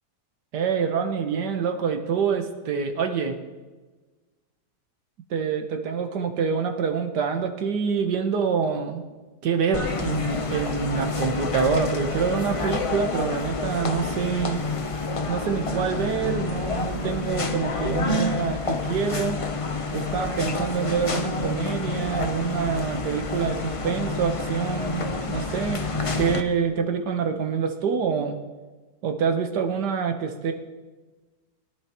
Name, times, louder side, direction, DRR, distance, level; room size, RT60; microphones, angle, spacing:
voice 1, 0.5-3.4 5.3-9.0 9.4-14.6 15.3-19.4 19.9-25.8 26.2-28.4 29.0-30.5, right 6 dB, 80° right, 5 dB, 1.7 m, -26 dB
sound 1, 9.7-26.4, left 3 dB, 45° left, 0.4 m, -28 dB
21.5 x 11.0 x 3.0 m, 1.3 s
omnidirectional pair, 1.8 m